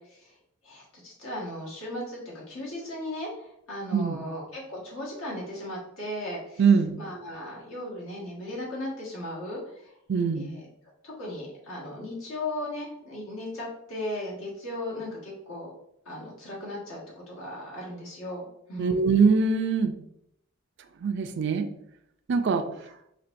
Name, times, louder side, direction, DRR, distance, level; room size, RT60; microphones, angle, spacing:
voice 1, 0.6-6.6 7.0-9.6 10.3-10.6 11.0-15.7 16.0-18.4 18.7-19.0, left 1 dB, 70° left, -5 dB, 1.5 m, -36 dB
voice 2, 6.6-6.9 10.1-10.5 18.8-19.9 21.0-21.7 22.3-22.6, right 5 dB, 55° right, 7 dB, 0.4 m, -22 dB
4.4 x 2.9 x 2.6 m, 0.76 s
head